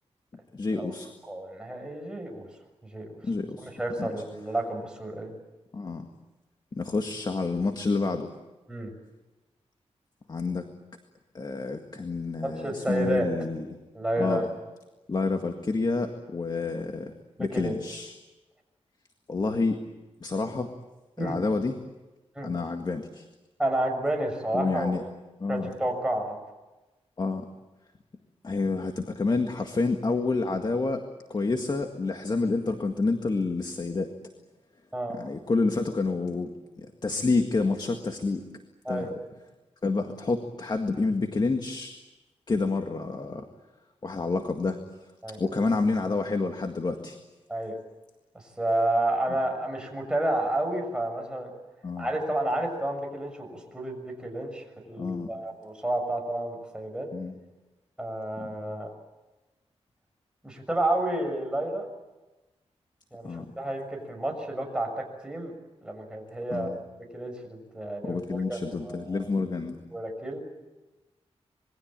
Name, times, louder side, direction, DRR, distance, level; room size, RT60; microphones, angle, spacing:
voice 1, 0.5-1.1 3.2-3.7 4.0-4.1 5.7-6.1 6.7-8.3 10.3-10.7 11.3-13.7 14.2-14.4 15.1-17.1 17.4-18.1 19.3-19.8 20.2-20.7 21.2-21.8 22.4-23.3 24.5-25.0 25.4-25.7 27.2-27.4 28.4-31.0 31.3-34.1 35.2-36.5 36.8-38.4 38.9-39.1 39.8-42.0 42.5-43.5 44.0-44.8 45.4-47.2 51.8-52.1 55.0-55.3 57.1-57.3 58.4-58.5 63.2-63.5 66.5-66.8 68.0-69.8, left 3 dB, 40° left, 5 dB, 1.9 m, -28 dB
voice 2, 1.3-2.5 2.8-3.2 3.6-5.3 8.7-8.9 12.4-13.3 13.9-14.4 17.5-17.7 21.2-21.4 22.3-22.5 23.6-24.9 25.5-26.4 34.9-35.2 38.8-39.1 45.2-45.4 47.5-47.7 48.3-51.5 52.0-57.1 58.0-58.9 60.4-61.9 63.1-65.5 65.8-66.8 67.1-69.3 69.9-70.4, right 1 dB, 10° right, 2 dB, 6.6 m, -30 dB
27.0 x 22.0 x 8.9 m, 1.1 s
wide cardioid pair, 125°, 11 cm